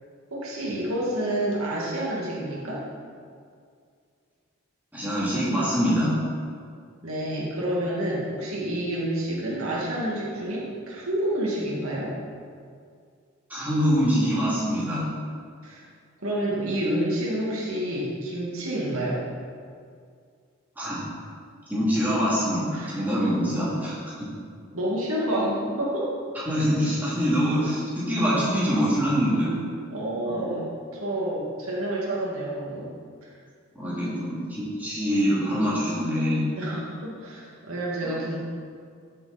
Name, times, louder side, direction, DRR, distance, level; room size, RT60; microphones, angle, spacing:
voice 1, 0.3-2.8 7.0-12.2 15.6-15.8 16.2-19.2 22.7-23.0 24.7-26.2 29.9-32.9 33.2-33.4 33.8-34.3 36.6-38.4, right 1 dB, 85° right, -5 dB, 2.5 m, -29 dB
voice 2, 4.9-6.2 13.5-15.1 20.8-21.0 21.7-23.9 26.4-29.5 30.3-30.5 33.7-36.5 38.0-38.3, equal, 10° right, -9 dB, 3.1 m, -24 dB
14.0 x 7.1 x 4.4 m, 2.2 s
head